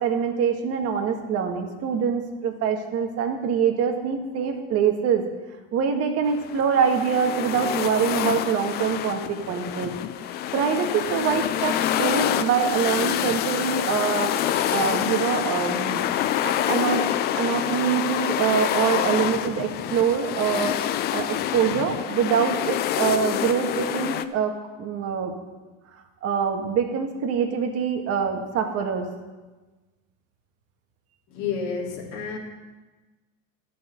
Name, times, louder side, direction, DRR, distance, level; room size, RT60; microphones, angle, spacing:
voice 1, 0.0-5.2 5.7-9.9 10.5-14.3 14.7-16.1 16.4-17.0 17.3-20.7 21.1-24.5 24.8-25.3 26.2-29.1, right 7 dB, 40° right, 3 dB, 1.7 m, -24 dB
sound 1, 6.2-24.2, left 11 dB, 25° left, 0.3 m, -27 dB
voice 2, 31.3-32.4, left 5 dB, 45° left, -3 dB, 2.7 m, -30 dB
12.0 x 5.8 x 7.8 m, 1.2 s
supercardioid pair, 130°, 39 cm